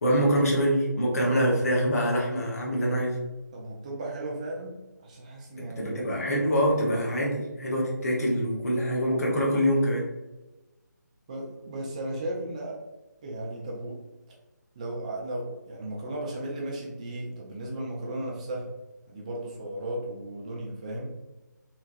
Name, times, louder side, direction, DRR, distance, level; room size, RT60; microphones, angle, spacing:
voice 1, 0.0-3.2 5.6-10.0, equal, 55° left, -3 dB, 0.8 m, -25 dB
voice 2, 3.5-4.8 5.0-6.9 11.3-12.8 13.2-14.0 14.8-18.7 19.1-21.1, right 1 dB, 20° right, -2 dB, 0.5 m, -35 dB
3.0 x 2.2 x 2.5 m, 1.1 s
figure-of-eight pair, 155°, 10 cm